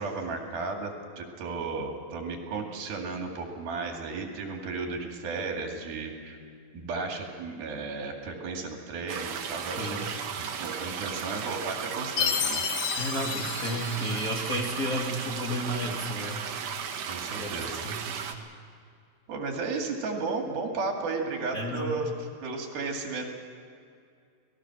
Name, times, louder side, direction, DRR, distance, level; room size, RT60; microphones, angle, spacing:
voice 1, 0.0-6.4 6.7-12.7 17.1-17.9 19.3-23.3, right 3 dB, 80° right, 1 dB, 4.3 m, -34 dB
sound 1, 9.1-18.3, right 7 dB, 65° right, 2.7 m, -35 dB
Chime, 12.2-14.6, left 9 dB, 80° left, 1.4 m, -31 dB
voice 2, 13.0-16.4 17.3-17.5 17.8-18.2 21.5-22.0, equal, 30° left, -3 dB, 2.2 m, -32 dB
29.5 x 19.0 x 6.3 m, 2.3 s
omnidirectional pair, 4.2 m